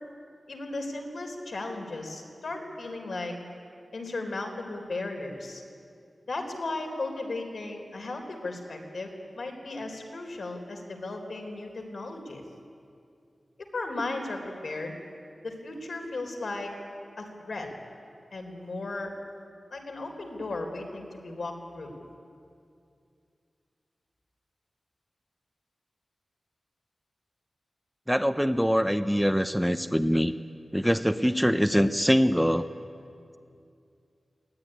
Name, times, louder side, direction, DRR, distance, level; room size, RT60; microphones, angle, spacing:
voice 1, 0.5-3.4 3.9-5.6 6.3-12.4 13.6-14.9 15.4-16.7 17.2-17.7 18.3-19.1 19.7-21.9, left 2 dB, 70° left, 3 dB, 3.9 m, -36 dB
voice 2, 28.1-30.3 30.7-32.7, equal, ahead, 9 dB, 0.7 m, -23 dB
22.5 x 17.0 x 10.0 m, 2.5 s
wide cardioid pair, 105°, 0 cm